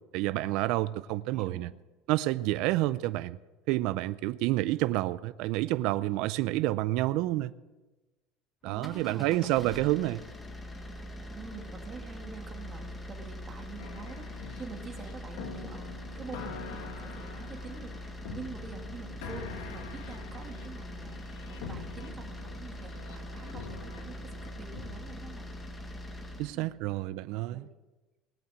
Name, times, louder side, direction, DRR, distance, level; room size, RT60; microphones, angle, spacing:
voice 1, 0.1-1.7 2.1-3.4 3.7-7.5 8.6-10.2 26.4-27.7, right 17 dB, 60° right, 0.4 m, -29 dB
voice 2, 1.3-1.6 8.6-9.9 11.4-14.3 14.5-25.5 26.3-26.9 27.2-27.7, right 5 dB, 25° right, 2.0 m, -46 dB
sound 1, 8.7-26.6, left 1 dB, 15° left, 1.4 m, -42 dB
sound 2, 13.8-25.0, left 5 dB, 75° left, 2.1 m, -45 dB
19.0 x 8.7 x 7.7 m
cardioid pair, 155°, 0 cm